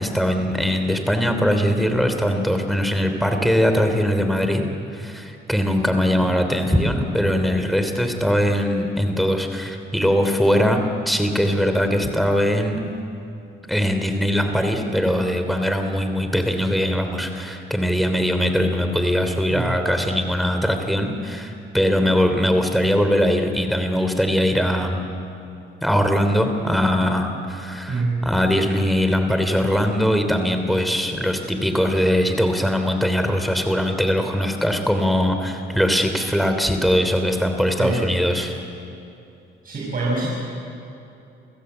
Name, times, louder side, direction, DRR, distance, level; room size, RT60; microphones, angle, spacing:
voice 1, 0.0-12.8 13.7-25.0 25.8-38.5, equal, ahead, 6 dB, 3.1 m, -21 dB
voice 2, 27.9-28.2 37.8-38.1 39.6-40.3, right 3 dB, 45° right, -5 dB, 6.5 m, -24 dB
29.0 x 16.0 x 8.1 m, 2.8 s
cardioid pair, 90°, 20 cm